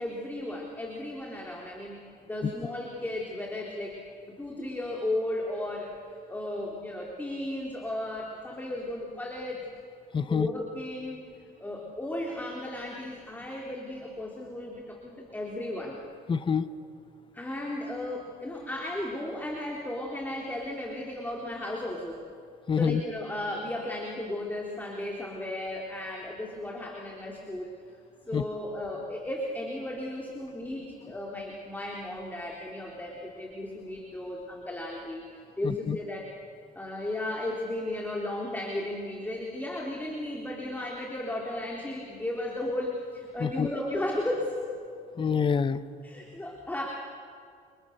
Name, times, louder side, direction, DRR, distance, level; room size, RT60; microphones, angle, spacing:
voice 1, 0.0-4.0 4.4-9.7 10.3-11.2 11.6-16.0 17.3-22.2 22.7-27.7 28.3-35.2 35.6-36.3 36.8-44.7 46.0-46.9, left 1 dB, 10° left, -1 dB, 3.7 m, -35 dB
voice 2, 10.1-10.5 16.3-16.7 22.7-23.0 28.3-28.4 35.6-36.0 43.4-43.7 45.2-45.8, left 6 dB, 30° left, 12 dB, 1.1 m, -26 dB
30.0 x 29.0 x 6.8 m, 2.3 s
cardioid pair, 110°, 17 cm